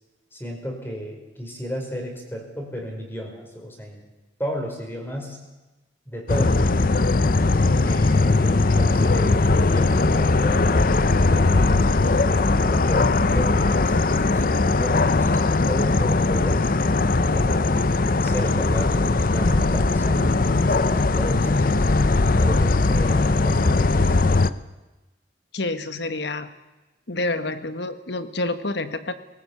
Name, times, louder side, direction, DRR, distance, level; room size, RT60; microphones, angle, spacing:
voice 1, 0.3-4.0 4.4-5.4 6.1-6.9 7.8-11.9 12.3-16.7 17.3-17.7 18.2-22.1 22.4-24.5, equal, 10° left, 1 dB, 4.8 m, -33 dB
sound 1, 6.3-24.5, left 3 dB, 50° left, 0.7 m, -19 dB
voice 2, 25.5-26.5 27.1-29.1, left 2 dB, 70° left, 11 dB, 1.5 m, -28 dB
20.0 x 18.5 x 8.4 m, 1.1 s
head